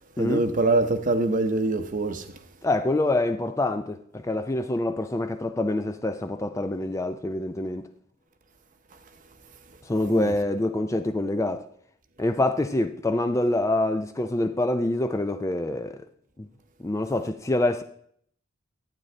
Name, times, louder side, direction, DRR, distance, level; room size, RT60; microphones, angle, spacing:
voice 1, 0.2-2.3 10.1-10.3, right 2 dB, 40° right, 0.8 m, -24 dB
voice 2, 2.6-7.8 9.9-11.7 12.2-16.0 16.4-16.5 16.8-17.8, left 2 dB, 15° left, 0.4 m, -26 dB
12.0 x 8.8 x 3.3 m
head